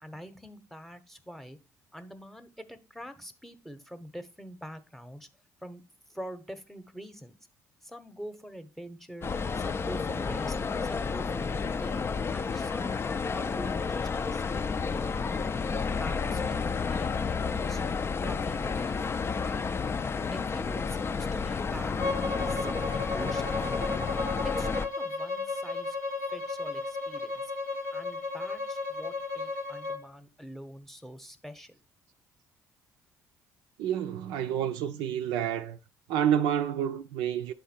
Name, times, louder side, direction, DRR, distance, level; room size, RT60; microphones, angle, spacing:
voice 1, 0.0-1.6 1.9-5.3 5.6-5.8 6.1-7.4 7.8-10.6 10.8-12.0 12.3-13.0 13.3-15.2 15.6-17.1 17.5-17.8 18.2-19.0 19.4-19.6 20.0-22.0 22.4-23.9 24.4-26.0 26.3-27.5 27.9-31.8, equal, 5° left, 0.9 m, -45 dB
sound 1, 9.2-24.9, left 5 dB, 30° left, 0.5 m, -31 dB
Bowed string instrument, 22.0-30.0, left 3 dB, 90° left, 0.8 m, -34 dB
voice 2, 33.8-35.8 36.1-37.5, right 10 dB, 70° right, 0.5 m, -29 dB
9.2 x 3.9 x 4.3 m
hypercardioid pair, 50°, 8 cm